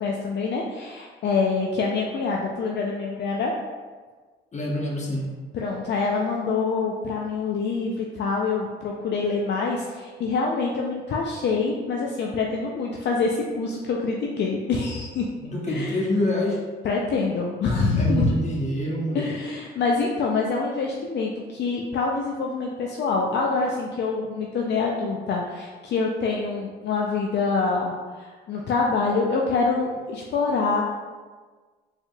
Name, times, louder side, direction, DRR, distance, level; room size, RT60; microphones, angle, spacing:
voice 1, 0.0-3.5 5.5-15.3 15.7-16.0 16.8-18.4 19.1-30.8, left 4 dB, 60° left, -1 dB, 0.5 m, -25 dB
voice 2, 4.5-5.3 15.4-16.6 18.0-19.3, equal, 35° left, -2 dB, 1.0 m, -26 dB
4.4 x 3.5 x 2.3 m, 1.4 s
cardioid pair, 90°, 20 cm